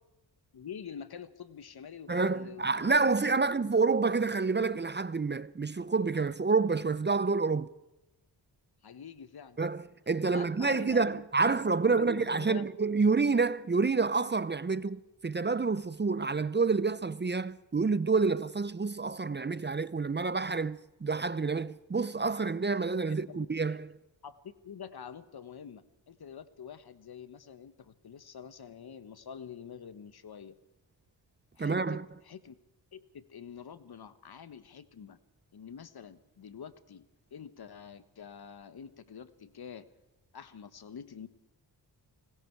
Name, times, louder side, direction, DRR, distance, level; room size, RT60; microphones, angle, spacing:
voice 1, 0.5-3.5 4.1-4.2 8.8-9.6 10.2-12.6 23.1-23.5 24.2-30.5 31.5-32.6 32.9-35.2 35.5-39.9 40.3-41.3, left 7 dB, 60° left, 1.4 m, -47 dB
voice 2, 2.1-7.7 9.6-23.9 31.6-32.0, right 4 dB, 25° right, 0.7 m, -28 dB
29.5 x 20.0 x 4.7 m
cardioid pair, 65°, 42 cm